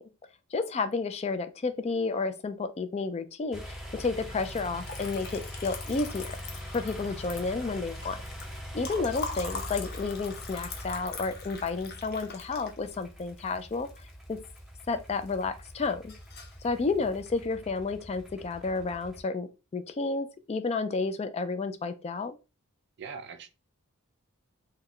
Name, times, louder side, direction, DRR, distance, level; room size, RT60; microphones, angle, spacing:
voice 1, 0.5-6.4 6.7-8.2 8.7-13.9 14.3-14.4 14.9-16.1 16.6-22.4, left 4 dB, 30° left, 0.3 m, -31 dB
sound 1, 3.5-19.2, equal, ahead, 0.7 m, -43 dB
Liquid, 4.4-14.6 14.9-15.6 15.8-16.6, left 5 dB, 50° left, 0.7 m, -42 dB
voice 2, 23.0-23.5, right 5 dB, 50° right, 0.4 m, -41 dB
3.1 x 2.2 x 3.7 m
head